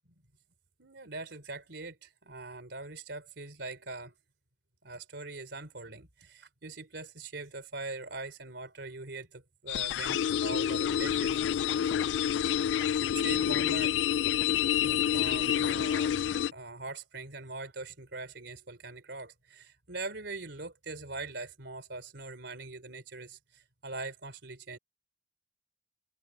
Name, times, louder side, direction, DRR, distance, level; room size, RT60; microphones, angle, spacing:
voice 1, 0.8-4.1 4.8-11.4 13.1-14.0 14.8-24.8, right 3 dB, 70° right, 3.9 m, -42 dB
sound 1, 9.7-16.5, left 9 dB, 75° left, 0.3 m, -28 dB
head